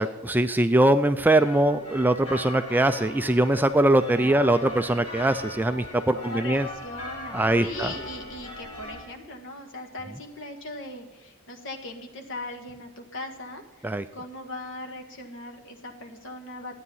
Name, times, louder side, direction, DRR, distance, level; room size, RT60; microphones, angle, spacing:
voice 1, 0.0-6.7 7.3-7.9 13.8-14.1, right 1 dB, 10° right, 9 dB, 0.3 m, -22 dB
sound 1, 1.2-9.0, left 2 dB, 25° left, 3.0 m, -39 dB
voice 2, 4.1-4.8 6.1-16.8, left 2 dB, 60° left, 4 dB, 1.7 m, -39 dB
12.5 x 9.3 x 5.6 m, 1.3 s
head